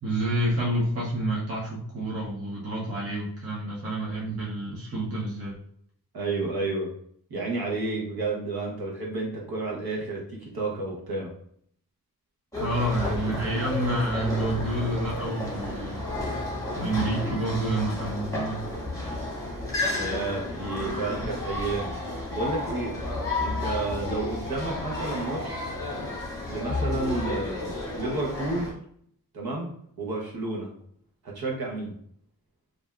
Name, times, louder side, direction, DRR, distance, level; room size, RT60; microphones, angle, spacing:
voice 1, 0.0-5.5 12.6-16.1 16.7-18.6, right 1 dB, 40° right, -5 dB, 0.9 m, -29 dB
voice 2, 6.1-6.9 7.3-11.3 19.9-21.9 22.3-23.0 23.4-25.7 26.5-28.7 29.3-29.7 30.0-30.7 31.2-31.9, right 2 dB, 80° right, -2 dB, 0.9 m, -31 dB
sound 1, 12.5-28.7, left 2 dB, 10° left, 1.1 m, -32 dB
3.2 x 2.6 x 2.3 m, 0.64 s
wide cardioid pair, 60°, 37 cm